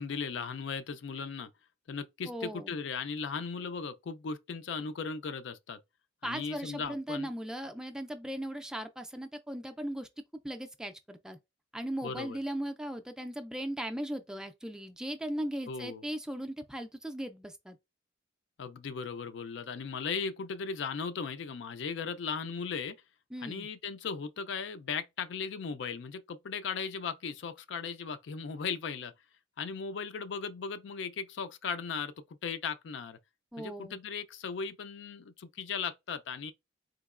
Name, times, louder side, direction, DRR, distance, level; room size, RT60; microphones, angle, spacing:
voice 1, 0.0-1.5 1.9-5.8 6.2-7.3 12.0-12.4 15.7-16.0 18.6-23.0 23.4-29.1 29.6-32.1 32.4-33.2 33.6-36.5, left 5 dB, 75° left, 0.4 m, -37 dB
voice 2, 2.3-2.7 6.2-10.1 10.4-11.4 11.7-17.8 23.3-23.7 33.5-34.0, right 1 dB, 5° right, 0.3 m, -38 dB
3.8 x 2.9 x 2.4 m
head